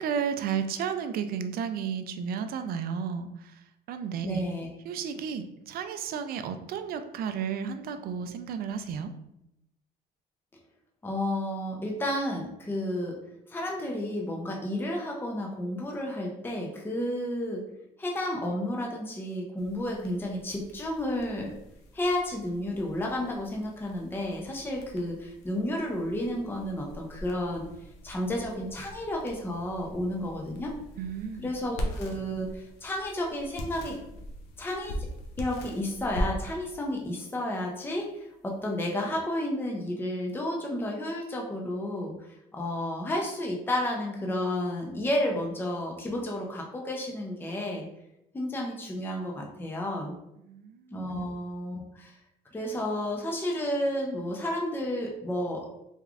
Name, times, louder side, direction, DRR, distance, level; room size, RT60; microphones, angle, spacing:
voice 1, 0.0-3.5 3.9-4.4 4.8-9.1 31.0-31.5 50.4-51.3, right 7 dB, 60° right, 9 dB, 0.4 m, -33 dB
voice 2, 4.2-4.7 11.0-13.2 13.5-17.6 18.0-21.5 21.9-27.7 28.0-30.7 31.4-34.0 34.6-35.1 35.4-42.2 42.5-47.9 48.3-50.1 50.9-52.1 52.5-55.7, left 1 dB, 15° left, 0 dB, 0.6 m, -31 dB
sound 1, 19.6-39.2, equal, 85° left, 0.7 m, -41 dB
3.5 x 3.2 x 2.4 m, 0.84 s
cardioid pair, 110°, 17 cm